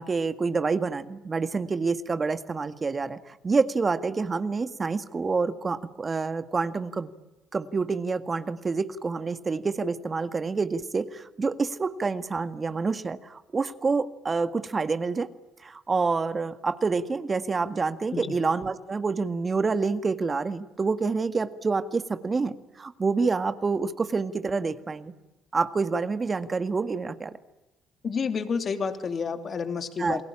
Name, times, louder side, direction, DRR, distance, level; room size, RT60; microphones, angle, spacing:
voice 1, 0.0-7.1 7.5-15.3 15.6-25.1 25.5-27.4 30.0-30.2, right 4 dB, 35° right, 11 dB, 1.8 m, -27 dB
voice 2, 28.0-30.2, left 5 dB, 50° left, 8 dB, 3.1 m, -29 dB
29.5 x 21.5 x 8.8 m, 1.0 s
hypercardioid pair, 55°, 0 cm